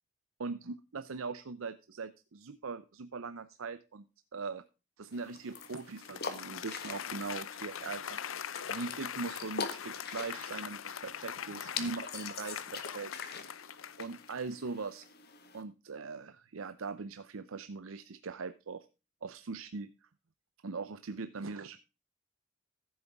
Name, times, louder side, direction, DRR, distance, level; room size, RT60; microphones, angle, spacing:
voice 1, 0.4-4.0 4.3-4.6 5.0-8.2 8.7-13.1 14.0-15.1 15.5-18.9 19.2-19.9 20.6-21.8, right 4 dB, 80° right, 11 dB, 0.6 m, -41 dB
sound 1, 5.1-15.6, left 5 dB, 50° left, 1.6 m, -44 dB
Applause, 5.6-14.5, left 8 dB, 70° left, 0.7 m, -42 dB
14.5 x 7.9 x 3.5 m, 0.30 s
head